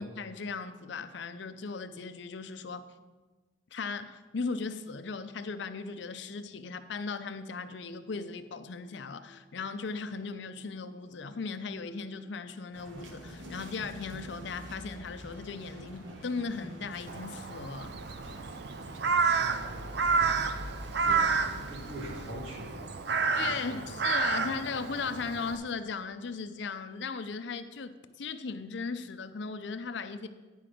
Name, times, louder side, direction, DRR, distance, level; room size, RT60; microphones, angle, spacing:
voice 1, 0.0-2.9 3.7-17.9 21.1-21.6 23.4-30.3, left 4 dB, 60° left, 11 dB, 0.5 m, -37 dB
sound 1, 8.1-9.5 9.7-24.8 25.5-26.1, left 1 dB, 25° left, 0.8 m, -51 dB
sound 2, 12.7-22.3, equal, 70° right, 1.2 m, -47 dB
Crow, 17.1-25.6, right 5 dB, 55° right, 0.5 m, -30 dB
voice 2, 19.3-20.4 20.7-23.8, right 1 dB, 85° right, 0 dB, 1.7 m, -45 dB
10.0 x 6.0 x 5.0 m, 1.3 s
head